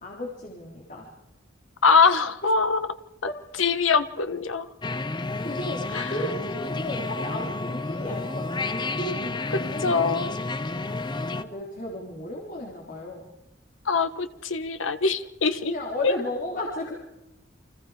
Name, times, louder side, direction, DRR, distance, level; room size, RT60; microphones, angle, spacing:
voice 1, 0.0-1.1 2.4-2.5 3.3-3.4 5.4-10.8 11.3-13.3 15.7-17.0, left 1 dB, 45° left, -2 dB, 3.6 m, -34 dB
voice 2, 1.8-2.9 3.6-4.7 5.9-6.1 9.8-10.3 13.9-15.7 16.0-16.1, left 5 dB, 85° left, 10 dB, 1.3 m, -23 dB
sound 1, 4.8-11.4, left 2 dB, 25° left, 0.8 m, -31 dB
29.0 x 26.0 x 5.0 m, 0.92 s
head